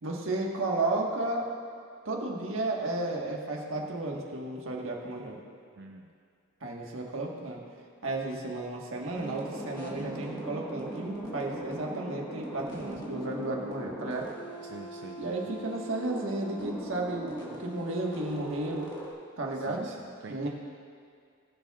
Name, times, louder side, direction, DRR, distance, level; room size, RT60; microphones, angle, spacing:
voice 1, 0.0-1.5 2.0-5.4 6.6-7.6 8.0-14.3 15.2-18.9 19.4-19.9 20.3-20.5, right 2 dB, 80° right, -1 dB, 1.4 m, -33 dB
voice 2, 5.8-6.1 14.7-15.6 19.5-20.5, right 3 dB, 60° right, 3 dB, 0.4 m, -46 dB
sound 1, 9.1-19.1, right 1 dB, 20° left, 1.5 m, -40 dB
20.0 x 7.3 x 2.4 m, 2.2 s
head